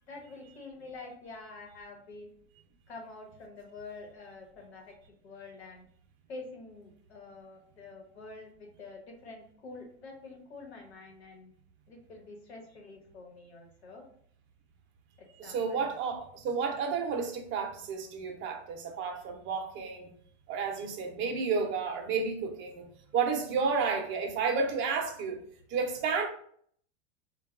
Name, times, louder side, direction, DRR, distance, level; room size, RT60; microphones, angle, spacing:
voice 1, 0.1-2.3 2.9-5.0 5.2-5.8 6.3-11.5 11.9-14.1 15.2-15.8, left 3 dB, 90° left, 1 dB, 1.1 m, -47 dB
voice 2, 15.4-20.1 20.5-22.8 23.1-25.4 25.7-26.3, right 5 dB, 40° right, 4 dB, 0.6 m, -31 dB
3.3 x 2.3 x 2.4 m, 0.62 s
hypercardioid pair, 115°, 31 cm